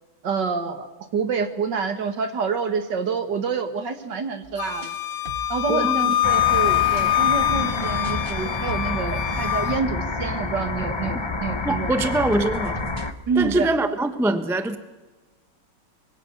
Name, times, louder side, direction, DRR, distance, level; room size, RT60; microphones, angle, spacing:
voice 1, 0.2-4.9 5.5-11.9 13.3-13.7, right 5 dB, 60° right, 9 dB, 2.4 m, -27 dB
sound 1, 4.4-7.1 7.8-8.4 8.7-11.7 12.1-13.7, right 2 dB, 35° right, 1.0 m, -40 dB
Wind instrument woodwind instrument, 4.6-9.8, left 13 dB, 75° left, 1.6 m, -24 dB
voice 2, 5.7-6.1 11.1-11.3 11.6-12.8 13.4-14.8, right 1 dB, ahead, 10 dB, 0.7 m, -23 dB
sound 2, 6.2-13.1, left 3 dB, 35° left, 0.4 m, -28 dB
25.5 x 22.5 x 7.0 m, 1.2 s
omnidirectional pair, 2.2 m